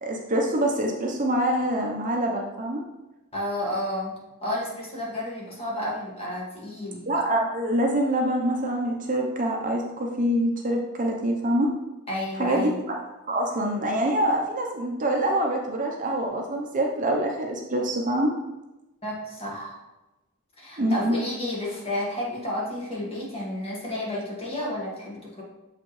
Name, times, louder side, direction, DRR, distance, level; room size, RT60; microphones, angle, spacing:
voice 1, 0.0-2.8 7.1-11.7 12.4-12.7 13.3-18.3 20.8-21.2, right 1 dB, 35° right, 1 dB, 0.8 m, -25 dB
voice 2, 3.3-4.1 4.4-7.0 12.1-12.8 19.0-19.8 20.6-25.4, left 1 dB, 25° left, -3 dB, 1.6 m, -31 dB
6.8 x 4.9 x 3.1 m, 1.0 s
head